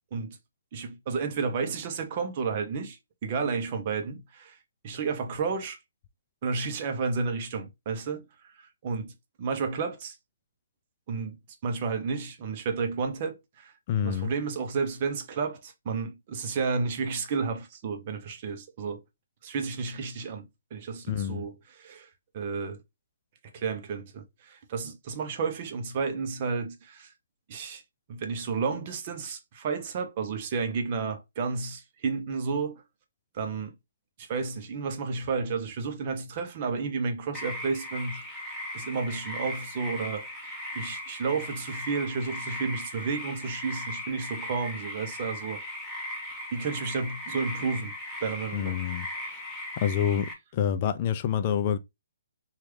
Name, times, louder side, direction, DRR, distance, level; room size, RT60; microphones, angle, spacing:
voice 1, 0.7-4.6 4.8-5.8 6.4-9.1 9.4-10.2 11.1-11.4 11.6-13.7 14.0-19.0 19.4-22.8 23.5-27.1 27.5-27.8 28.1-32.8 33.3-33.7 34.2-38.5 38.7-45.6 46.5-47.9 48.2-48.8, right 5 dB, 40° right, 0.7 m, -32 dB
voice 2, 13.9-14.3 21.1-21.4 48.5-49.1 49.8-51.8, left 8 dB, 35° left, 0.3 m, -27 dB
sound 1, 37.3-50.3, left 1 dB, 5° left, 0.9 m, -38 dB
3.0 x 2.4 x 3.2 m
hypercardioid pair, 140°, 0 cm